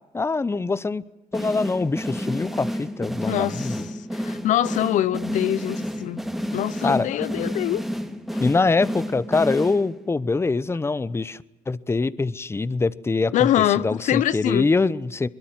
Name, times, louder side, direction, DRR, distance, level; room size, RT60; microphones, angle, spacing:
voice 1, 0.1-1.0 1.3-3.8 6.8-7.1 8.4-11.4 11.7-13.5 13.8-15.3, left 3 dB, 20° left, 0.9 m, -23 dB
sound 1, 1.3-10.1, equal, ahead, 3.0 m, -30 dB
voice 2, 3.3-6.2 6.5-7.8 8.3-8.4 13.3-14.7, left 13 dB, 75° left, 0.8 m, -24 dB
23.5 x 21.5 x 9.3 m
cardioid pair, 90°, 13 cm